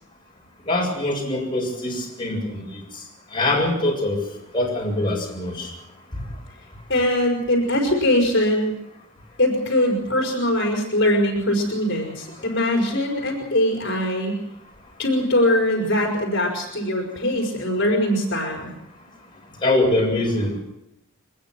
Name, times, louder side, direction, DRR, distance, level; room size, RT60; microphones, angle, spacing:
voice 1, 0.7-2.6 3.3-4.2 4.5-5.7 6.1-6.2 19.6-20.6, left 2 dB, 25° left, -1 dB, 7.2 m, -23 dB
voice 2, 6.9-8.8 9.4-14.4 15.0-18.7, left 1 dB, 60° left, 1 dB, 5.3 m, -22 dB
23.5 x 21.0 x 6.1 m, 0.82 s
head